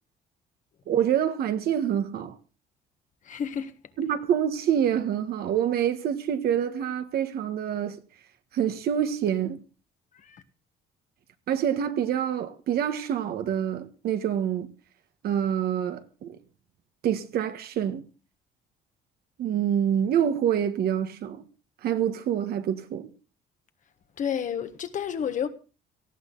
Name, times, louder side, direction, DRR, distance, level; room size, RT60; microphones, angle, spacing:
voice 1, 0.9-2.3 4.0-8.0 8.5-9.6 11.5-14.7 15.2-16.4 17.0-18.0 19.4-21.4 21.8-23.1, right 9 dB, 65° right, 1.6 m, -26 dB
voice 2, 3.2-3.7 10.2-10.4 24.2-25.5, left 8 dB, 50° left, 1.5 m, -30 dB
18.5 x 14.0 x 4.0 m
cardioid pair, 110°, 17 cm